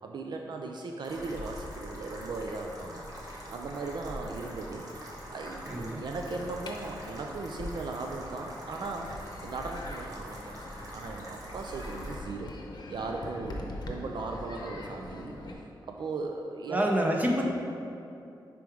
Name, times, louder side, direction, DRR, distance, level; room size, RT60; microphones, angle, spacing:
voice 1, 0.0-4.8 5.3-10.6 10.9-12.5 12.9-16.9, right 3 dB, 65° right, 3 dB, 0.4 m, -38 dB
sound 1, 1.0-12.2, equal, 45° right, 1.2 m, -44 dB
voice 2, 5.7-6.0 16.7-17.4, right 1 dB, 20° right, 0 dB, 0.8 m, -27 dB
sound 2, 6.1-15.5, left 1 dB, 60° left, 0.8 m, -43 dB
5.3 x 4.5 x 4.8 m, 2.7 s
wide cardioid pair, 115°, 8 cm